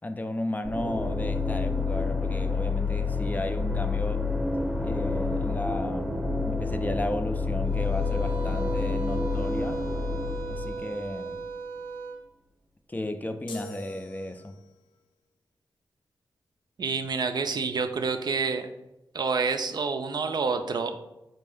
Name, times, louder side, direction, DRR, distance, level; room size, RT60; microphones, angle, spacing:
voice 1, 0.0-4.3 4.8-9.8 10.5-11.4 12.9-14.5, left 1 dB, 20° left, 0.4 m, -34 dB
sound 1, 0.6-11.4, left 3 dB, ahead, 0.8 m, -29 dB
sound 2, 7.6-12.2, right 4 dB, 90° right, 0.7 m, -36 dB
sound 3, 13.5-14.8, left 2 dB, 80° left, 0.4 m, -44 dB
voice 2, 16.8-18.7 19.1-20.9, right 4 dB, 55° right, 0.4 m, -28 dB
4.4 x 2.6 x 3.4 m
cardioid pair, 55°, 8 cm